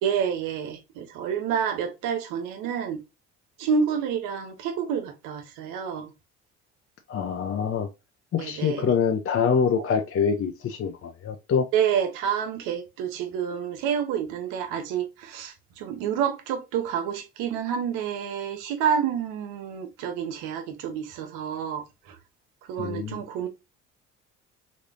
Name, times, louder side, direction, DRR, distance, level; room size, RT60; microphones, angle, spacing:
voice 1, 0.0-3.0 3.6-6.1 8.4-8.9 9.8-9.9 11.7-22.2 22.7-23.5, right 7 dB, 80° right, 1.1 m, -28 dB
voice 2, 7.1-7.9 8.3-11.7 22.8-23.2, left 6 dB, 45° left, 0.7 m, -25 dB
4.1 x 3.3 x 2.5 m
hypercardioid pair, 60°, 31 cm